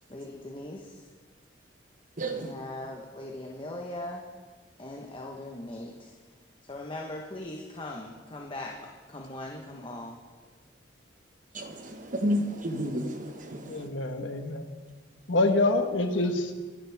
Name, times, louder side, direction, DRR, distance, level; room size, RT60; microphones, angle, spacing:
voice 1, 0.1-1.1 2.3-4.2 4.8-6.1 6.7-10.2, left 1 dB, 25° left, 1.2 m, -40 dB
voice 2, 2.2-2.6 11.5-13.9, equal, 45° right, 1.5 m, -31 dB
voice 3, 13.7-14.7 15.3-16.5, left 2 dB, 75° left, 1.5 m, -26 dB
26.0 x 11.5 x 3.6 m
head